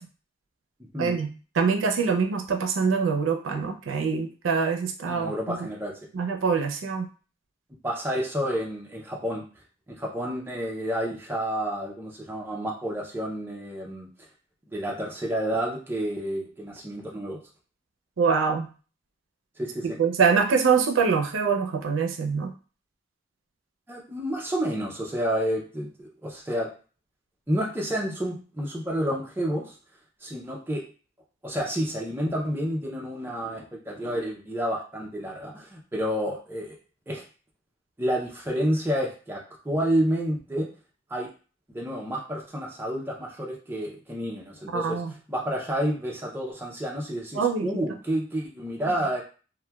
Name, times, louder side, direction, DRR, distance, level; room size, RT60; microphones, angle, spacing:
voice 1, 1.0-1.3 1.6-5.6 6.1-7.1 18.2-18.7 20.0-22.5 44.7-45.1 47.3-47.7, right 5 dB, 90° right, 4 dB, 0.4 m, -24 dB
voice 2, 5.1-6.0 7.8-9.4 9.9-14.1 14.7-17.4 19.6-20.0 23.9-26.7 27.5-29.7 30.2-30.8 31.4-36.8 37.1-37.2 38.0-40.7 41.1-41.3 41.7-45.0 45.3-49.2, equal, 10° right, -2 dB, 0.4 m, -29 dB
2.9 x 2.1 x 2.2 m, 0.37 s
head